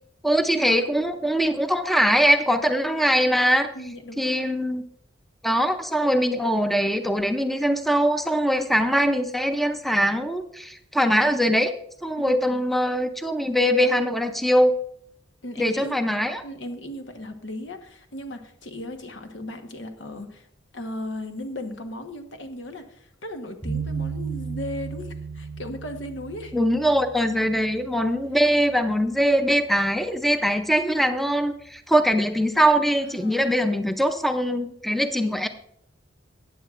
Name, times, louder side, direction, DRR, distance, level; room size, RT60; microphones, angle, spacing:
voice 1, 0.2-3.7 4.2-4.8 5.4-11.7 12.0-14.7 15.6-16.4 26.5-35.5, equal, ahead, 8 dB, 0.5 m, -22 dB
voice 2, 3.7-4.5 12.2-12.7 15.4-16.0 16.4-20.5 20.7-26.6 33.0-33.8, left 1 dB, 85° left, 6 dB, 1.2 m, -37 dB
sound 1, 23.6-29.4, right 5 dB, 30° left, 3.0 m, -35 dB
15.0 x 9.1 x 2.5 m, 0.70 s
head